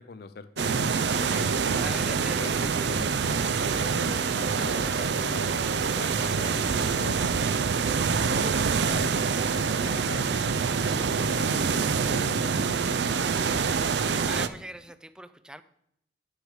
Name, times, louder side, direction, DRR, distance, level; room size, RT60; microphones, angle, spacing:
voice 1, 0.0-7.3 8.2-13.0 13.3-13.6, left 4 dB, 60° left, 10 dB, 0.5 m, -42 dB
sound 1, 0.6-14.5, right 5 dB, 70° right, 0.5 m, -26 dB
voice 2, 1.7-2.4 14.3-15.6, right 1 dB, 5° right, 12 dB, 0.4 m, -41 dB
10.0 x 6.4 x 4.9 m, 0.73 s
head